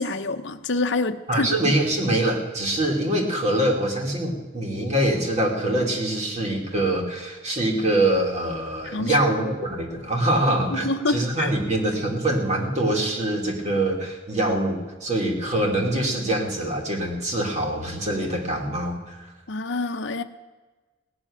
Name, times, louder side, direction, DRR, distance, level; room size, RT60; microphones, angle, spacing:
voice 1, 0.0-1.5 8.8-9.2 10.7-11.5 19.5-20.2, left 3 dB, 60° left, 7 dB, 0.8 m, -26 dB
voice 2, 1.3-19.3, right 1 dB, 35° right, 1 dB, 2.6 m, -24 dB
17.5 x 7.2 x 9.8 m, 1.2 s
head